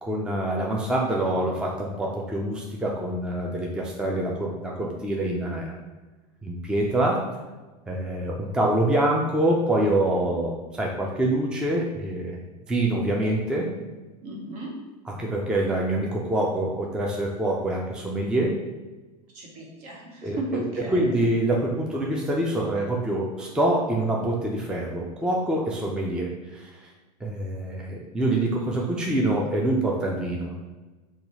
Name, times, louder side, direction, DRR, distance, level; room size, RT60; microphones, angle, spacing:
voice 1, 0.0-5.7 6.4-7.2 7.9-12.4 12.7-13.7 15.1-18.6 20.2-20.6 20.9-26.7 27.2-30.5, right 1 dB, 5° right, -1 dB, 0.4 m, -25 dB
voice 2, 14.2-14.7 19.3-21.2, right 2 dB, 60° right, -2 dB, 1.2 m, -35 dB
2.8 x 2.4 x 4.0 m, 1.2 s
hypercardioid pair, 110°, 20 cm